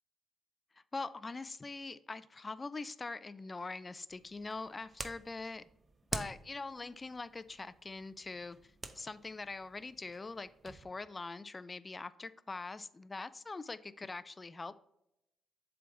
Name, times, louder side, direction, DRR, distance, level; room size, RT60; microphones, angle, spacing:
voice 1, 0.7-5.6 6.1-14.8, left 3 dB, 30° left, 16 dB, 0.4 m, -43 dB
sound 1, 4.1-10.8, right 3 dB, 35° right, 0.7 m, -48 dB
7.5 x 3.4 x 3.8 m, 0.83 s
supercardioid pair, 50°, 0 cm